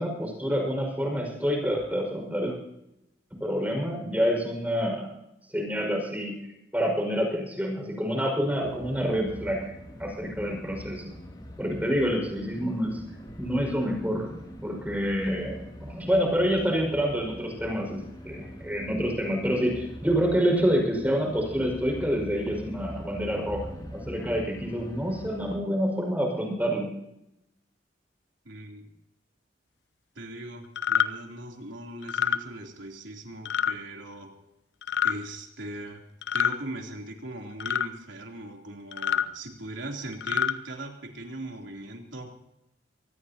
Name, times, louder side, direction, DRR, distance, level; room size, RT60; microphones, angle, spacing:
voice 1, 0.0-2.5 3.4-5.1 5.5-6.4 6.7-9.7 10.0-11.1 11.6-13.0 13.4-14.3 14.6-15.6 15.8-26.9, equal, 10° right, 1 dB, 5.6 m, -27 dB
sound 1, 8.6-25.6, equal, 25° left, 2.8 m, -43 dB
voice 2, 28.4-28.9 30.1-34.4 35.0-36.0 36.3-42.3, right 1 dB, 90° right, 1 dB, 3.3 m, -40 dB
sound 2, 30.8-31.1 32.0-32.4 33.5-33.7 34.8-35.2 36.2-36.6 37.6-37.9 38.9-39.3 40.1-40.5, left 8 dB, 65° left, 0.7 m, -26 dB
24.5 x 19.5 x 2.9 m, 0.85 s
head